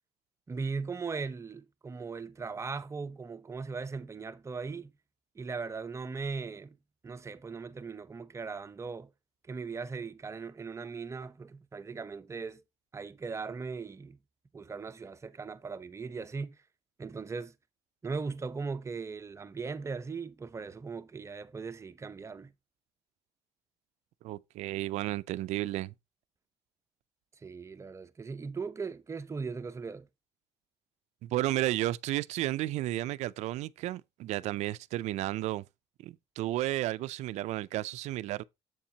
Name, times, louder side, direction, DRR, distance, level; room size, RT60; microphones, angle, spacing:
voice 1, 0.5-4.9 5.3-6.8 7.0-9.1 9.5-12.6 12.9-14.2 14.5-16.6 17.0-17.5 18.0-22.5 27.4-30.1, right 4 dB, 25° right, 0.7 m, -38 dB
voice 2, 24.2-25.9 31.2-35.6 36.0-38.4, right 15 dB, 80° right, 0.4 m, -32 dB
7.9 x 7.2 x 2.8 m
cardioid pair, 110°, 11 cm